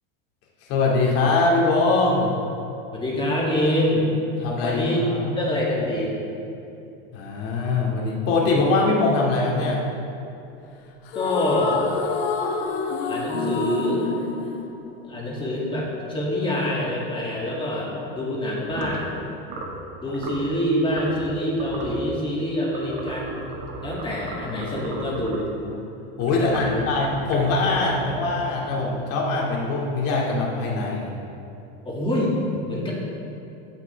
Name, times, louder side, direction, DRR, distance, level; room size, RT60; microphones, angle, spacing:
voice 1, 0.7-2.3 4.4-5.3 7.1-9.8 20.1-20.2 25.6-25.7 26.2-31.1, left 3 dB, 50° left, -3 dB, 2.3 m, -22 dB
voice 2, 2.9-4.1 4.6-6.1 11.1-11.8 13.0-14.0 15.0-19.1 20.0-23.4 23.8-25.5 26.4-26.8 31.8-32.3 32.7-32.9, left 1 dB, 15° left, -5 dB, 2.4 m, -25 dB
sound 1, 11.1-15.5, left 4 dB, 75° left, 1.1 m, -27 dB
sound 2, 18.7-19.0 19.5-19.8 20.1-20.4 20.9-21.3 21.6-22.0 22.7-25.6 26.2-29.0, right 2 dB, 65° right, 1.9 m, -36 dB
16.0 x 5.9 x 3.5 m, 2.8 s
supercardioid pair, 120°, 30 cm